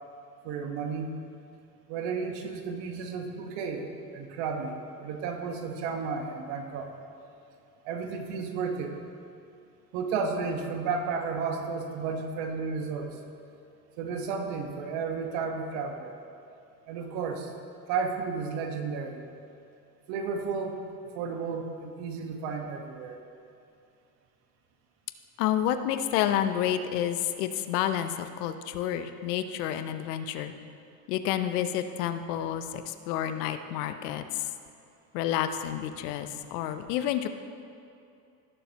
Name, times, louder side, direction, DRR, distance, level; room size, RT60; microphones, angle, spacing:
voice 1, 0.4-1.1 1.9-6.9 7.8-9.0 9.9-13.1 14.0-16.1 16.9-17.5 17.9-19.2 20.1-20.8 21.1-23.2, right 5 dB, 70° right, 4 dB, 1.4 m, -33 dB
voice 2, 25.4-30.5 31.1-34.5 35.1-37.3, left 10 dB, 80° left, 10 dB, 0.8 m, -29 dB
17.5 x 7.0 x 2.9 m, 2.6 s
hypercardioid pair, 80°, 47 cm